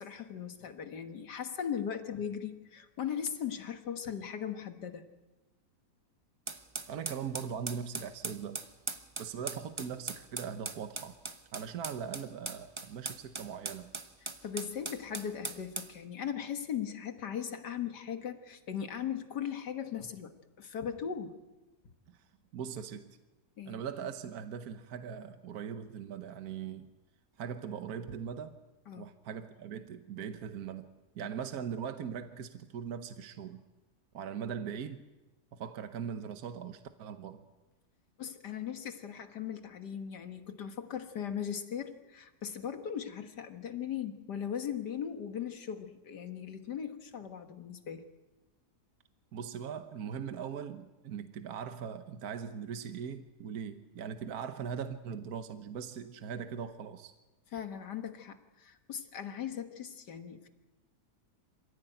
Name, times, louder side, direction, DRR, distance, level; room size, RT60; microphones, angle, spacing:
voice 1, 0.0-5.0 14.2-21.4 23.6-23.8 28.9-29.1 38.2-48.0 57.5-60.5, left 8 dB, 85° left, 2.1 m, -38 dB
sound 1, 6.5-15.9, right 3 dB, 20° right, 0.9 m, -40 dB
voice 2, 6.9-8.6 9.2-11.1 11.5-13.9 22.1-22.2 22.5-23.2 23.6-26.9 27.4-28.6 29.0-30.9 31.1-33.6 34.1-35.0 35.5-37.4 49.3-57.1, right 7 dB, 65° right, 1.5 m, -40 dB
26.5 x 16.0 x 9.1 m
omnidirectional pair, 1.8 m